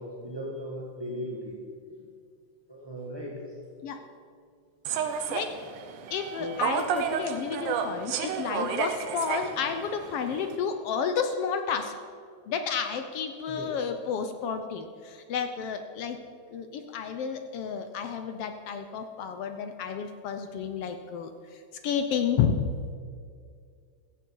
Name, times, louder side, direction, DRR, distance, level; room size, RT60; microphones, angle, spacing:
voice 1, 0.0-1.6 2.7-3.3 6.4-6.6 13.5-13.7, equal, 15° right, -4 dB, 1.0 m, -37 dB
Human voice / Subway metro underground, 4.8-10.6, right 7 dB, 90° right, 2.5 m, -32 dB
voice 2, 6.1-11.9 12.5-16.2 16.5-22.7, left 7 dB, 75° left, 7 dB, 1.4 m, -31 dB
16.0 x 14.0 x 4.6 m, 2.2 s
omnidirectional pair, 3.4 m